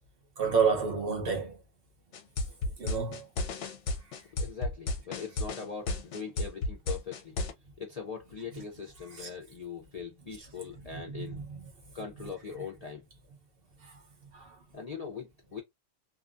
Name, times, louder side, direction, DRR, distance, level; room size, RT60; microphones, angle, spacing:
voice 1, 0.4-1.6 2.8-3.3 8.5-8.6 9.1-9.3 10.9-11.6 13.8-14.0 14.3-14.6, right 5 dB, 50° right, 1.0 m, -30 dB
sound 1, 2.1-7.5, left 2 dB, 70° left, 0.9 m, -32 dB
voice 2, 4.4-7.4 7.8-11.4 11.9-13.0 14.7-15.6, left 6 dB, 50° left, 0.5 m, -41 dB
2.9 x 2.2 x 2.5 m
omnidirectional pair, 1.3 m